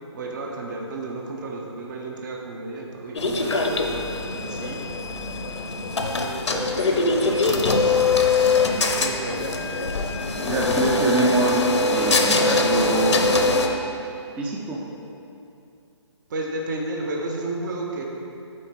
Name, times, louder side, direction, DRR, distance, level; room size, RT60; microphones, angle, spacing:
voice 1, 0.1-4.8 6.2-8.0 8.7-9.6 16.3-18.0, right 2 dB, 40° right, 1 dB, 0.8 m, -32 dB
sound 1, 3.1-13.7, left 3 dB, 70° left, 0.8 m, -22 dB
voice 2, 10.5-13.2 14.4-14.8, right 1 dB, 10° right, -1 dB, 0.4 m, -24 dB
8.9 x 4.2 x 4.5 m, 2.7 s
figure-of-eight pair, 145°, 15 cm